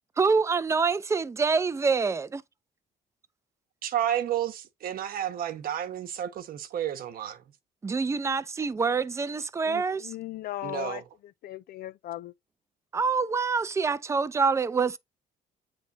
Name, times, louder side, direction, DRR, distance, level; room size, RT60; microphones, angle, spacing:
voice 1, 0.2-2.4 7.8-10.1 12.9-15.0, right 5 dB, 15° right, 0.5 m, -26 dB
voice 2, 3.8-7.4 10.6-11.0, right 10 dB, 60° right, 1.0 m, -31 dB
voice 3, 9.6-12.3, left 14 dB, 65° left, 0.5 m, -38 dB
8.3 x 3.4 x 4.0 m
cardioid pair, 110°, 17 cm